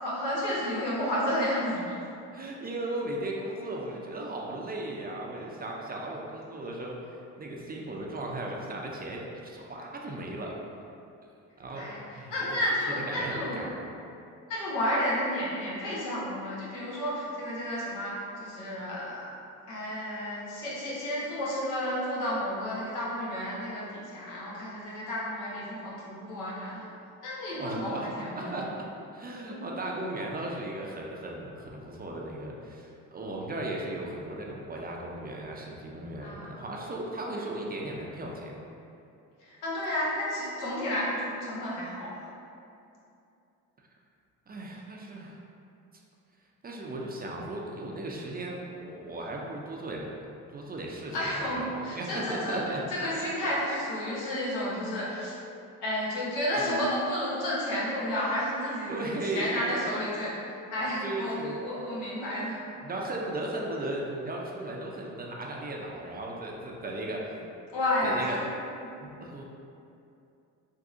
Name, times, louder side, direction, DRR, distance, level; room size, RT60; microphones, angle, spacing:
voice 1, 0.0-1.9 11.8-12.0 12.3-13.7 14.5-19.3 19.7-26.9 27.2-28.6 29.5-29.7 36.2-36.5 39.4-42.1 51.1-52.6 52.9-55.3 55.8-62.6 67.7-68.4 68.8-68.9, left 1 dB, 85° left, -7 dB, 1.0 m, -31 dB
voice 2, 2.3-10.6 11.6-12.6 13.0-13.7 27.6-28.1 28.3-28.9 29.1-38.6 44.5-45.4 46.6-50.1 50.5-52.8 53.1-53.8 56.5-56.8 58.9-59.8 61.0-61.6 62.8-67.4 68.0-68.4 69.0-69.4, right 1 dB, 25° right, -1 dB, 0.4 m, -36 dB
3.7 x 2.6 x 2.5 m, 2.7 s
supercardioid pair, 70°, 38 cm